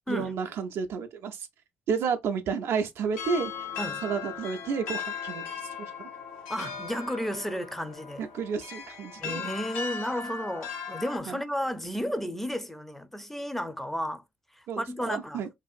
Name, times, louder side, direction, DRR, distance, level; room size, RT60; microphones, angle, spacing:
voice 1, 0.1-1.5 1.9-3.5 4.0-6.1 8.2-9.5 11.3-11.4 14.7-15.5, right 6 dB, 65° right, 0.4 m, -31 dB
sound 1, 3.1-11.2, left 6 dB, 80° left, 0.7 m, -38 dB
voice 2, 6.5-8.3 9.2-14.2 14.8-15.4, equal, 5° left, 0.5 m, -33 dB
2.6 x 2.4 x 2.3 m
hypercardioid pair, 50°, 5 cm